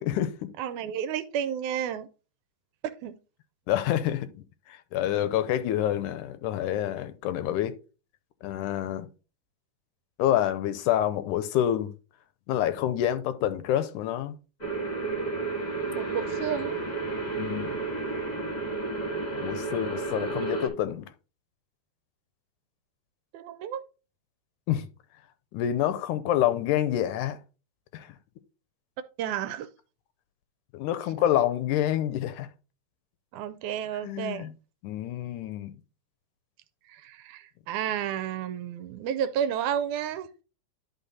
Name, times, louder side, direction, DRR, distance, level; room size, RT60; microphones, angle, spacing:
voice 1, 0.0-0.5 3.7-7.8 8.4-9.1 10.2-11.9 12.5-14.4 17.4-17.7 19.3-21.1 24.7-24.9 25.5-27.4 27.9-28.1 30.7-32.5 34.0-34.5 34.8-35.7, left 11 dB, 80° left, 2.1 m, -27 dB
voice 2, 0.6-2.1 2.8-3.2 15.9-16.8 23.3-23.8 29.2-29.7 33.3-34.6 36.9-40.3, right 9 dB, 80° right, 1.9 m, -31 dB
sound 1, 14.6-20.7, right 3 dB, 20° left, 1.0 m, -31 dB
11.0 x 3.8 x 4.1 m
omnidirectional pair, 3.7 m